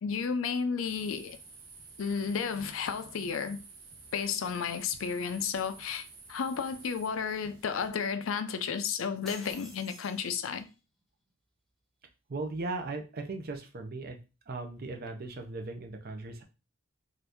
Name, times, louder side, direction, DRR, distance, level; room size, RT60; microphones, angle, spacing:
voice 1, 0.0-1.4 2.0-3.6 4.1-10.7, left 6 dB, 75° left, 0.4 m, -32 dB
sound 1, 0.8-7.9, right 4 dB, 80° right, 1.0 m, -51 dB
sound 2, 9.3-10.7, left 1 dB, ahead, 0.7 m, -49 dB
voice 2, 12.3-14.2 14.5-16.4, right 3 dB, 50° right, 0.5 m, -37 dB
2.8 x 2.5 x 3.4 m
head